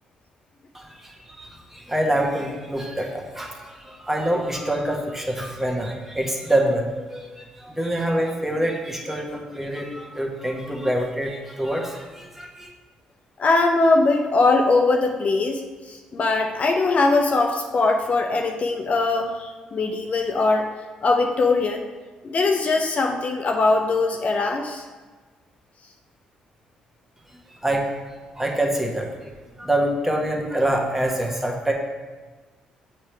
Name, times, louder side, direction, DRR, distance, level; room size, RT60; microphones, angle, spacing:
voice 1, 0.7-12.7 27.6-27.9 28.3-29.3 29.6-31.7, right 1 dB, 10° right, 0 dB, 1.3 m, -26 dB
voice 2, 13.4-15.6 15.9-20.7 21.0-21.8 22.2-24.8, left 3 dB, 45° left, 3 dB, 0.6 m, -21 dB
7.3 x 3.4 x 4.5 m, 1.3 s
hypercardioid pair, 50°, 3 cm